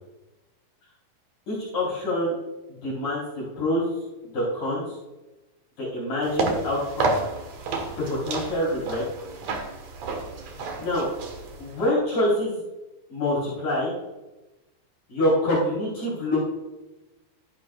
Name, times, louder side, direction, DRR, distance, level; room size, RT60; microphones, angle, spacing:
voice 1, 1.5-2.4 2.8-4.0 4.2-5.0 5.8-7.1 8.1-9.0 10.8-11.1 11.6-12.6 13.1-14.0 15.1-16.4, left 1 dB, 50° left, -7 dB, 5.2 m, -26 dB
sound 1, 6.2-11.8, right 3 dB, 60° right, 2.0 m, -30 dB
13.5 x 10.5 x 2.4 m, 1.0 s
omnidirectional pair, 4.6 m